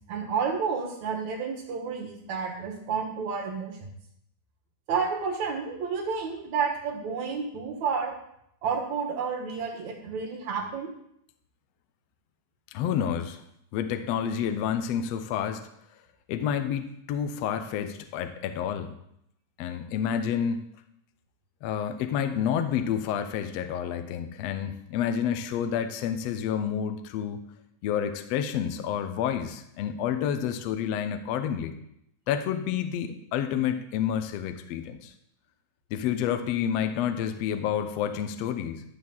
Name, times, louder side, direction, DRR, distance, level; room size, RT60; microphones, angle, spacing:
voice 1, 0.1-3.8 4.9-8.2 8.6-10.9, right 5 dB, 65° right, 1 dB, 2.7 m, -30 dB
voice 2, 12.7-13.4 13.7-15.7 16.3-19.0 19.6-20.6 21.6-27.4 27.8-31.7 32.3-35.1 35.9-38.8, left 8 dB, 75° left, 8 dB, 1.5 m, -29 dB
12.5 x 4.2 x 7.1 m, 0.74 s
omnidirectional pair, 3.8 m